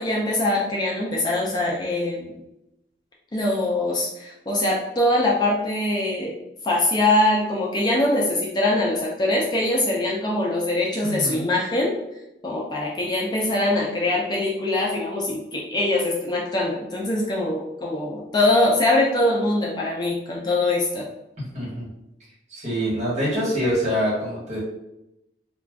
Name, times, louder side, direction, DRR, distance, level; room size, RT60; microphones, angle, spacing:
voice 1, 0.0-2.4 3.3-6.3 6.6-11.9 12.4-21.1, left 1 dB, 25° left, -3 dB, 0.4 m, -23 dB
voice 2, 11.0-11.5 21.5-21.9 22.5-24.6, equal, 40° right, -6 dB, 1.3 m, -25 dB
2.4 x 2.2 x 3.4 m, 0.88 s
head